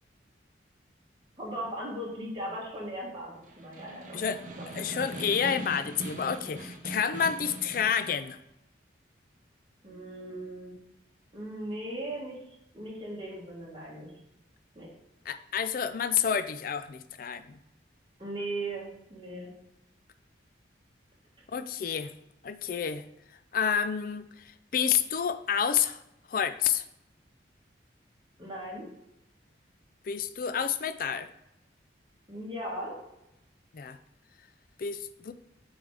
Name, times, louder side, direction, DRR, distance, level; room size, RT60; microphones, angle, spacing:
voice 1, 1.4-4.2 9.8-10.8 11.3-12.4 12.7-14.1 14.7-14.9 18.2-19.5 28.4-28.9 32.3-33.0, right 1 dB, 25° right, -4 dB, 1.7 m, -38 dB
Snare drum, 3.3-8.3, right 1 dB, 45° right, 0.7 m, -41 dB
voice 2, 4.7-8.4 15.3-17.6 21.5-22.1 22.4-23.0 23.5-24.2 24.7-26.0 26.3-26.8 30.1-31.3 33.7-34.0 34.8-35.3, left 7 dB, 50° left, 12 dB, 0.3 m, -29 dB
8.7 x 3.6 x 3.3 m, 0.86 s
head